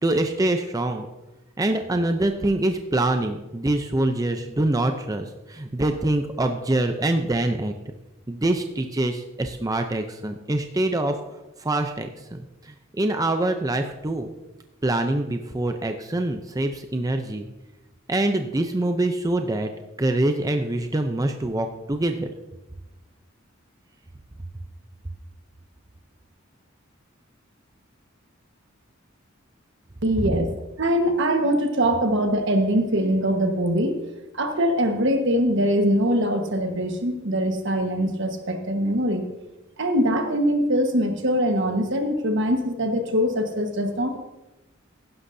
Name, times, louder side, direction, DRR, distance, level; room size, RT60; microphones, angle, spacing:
voice 1, 0.0-1.1 1.6-7.7 8.3-11.2 11.6-14.3 14.8-17.5 18.1-19.7 20.0-22.3 30.2-30.4, right 1 dB, 20° right, 6 dB, 0.6 m, -25 dB
voice 2, 30.0-30.5 30.8-34.0 34.3-39.2 39.8-44.2, equal, 65° right, 5 dB, 1.4 m, -22 dB
15.5 x 11.5 x 2.7 m, 1.0 s
head